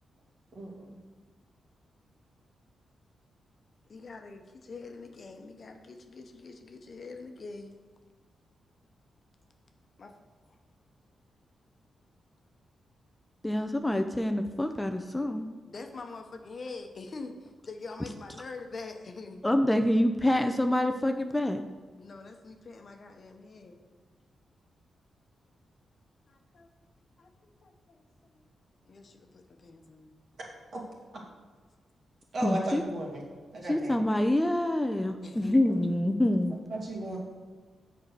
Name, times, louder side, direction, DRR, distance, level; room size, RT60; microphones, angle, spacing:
voice 1, 0.5-1.0 30.7-30.8 32.3-33.2 33.5-34.0 35.7-35.9 36.1-36.2 36.7-37.2, right 1 dB, 60° right, -3 dB, 2.4 m, -35 dB
voice 2, 3.9-7.7 10.0-10.1 10.5-10.6 15.6-19.5 22.0-23.8 26.3-26.7 27.2-28.5 28.9-30.1 35.2-35.6, left 3 dB, 50° left, 5 dB, 0.9 m, -45 dB
voice 3, 13.4-15.5 19.4-21.6 32.4-32.8 33.7-36.6, left 1 dB, 10° left, 6 dB, 0.5 m, -26 dB
7.3 x 4.6 x 6.6 m, 1.5 s
cardioid pair, 80°, 0 cm